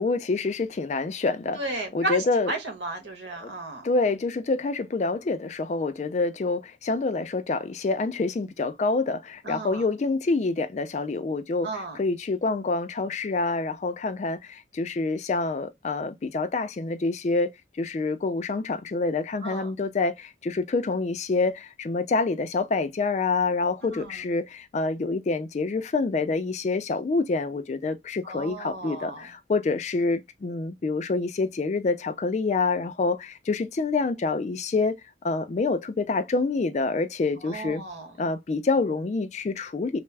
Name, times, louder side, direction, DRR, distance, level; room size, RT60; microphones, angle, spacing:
voice 1, 0.0-2.5 3.4-3.5 3.8-11.7 11.9-17.5 17.8-37.8 38.2-40.0, left 3 dB, 40° left, 0.3 m, -27 dB
voice 2, 1.6-3.9 9.4-9.8 11.6-12.0 19.4-19.7 23.8-24.2 28.2-29.3 37.4-38.2, right 2 dB, 75° right, 1.2 m, -34 dB
3.2 x 2.0 x 3.2 m
head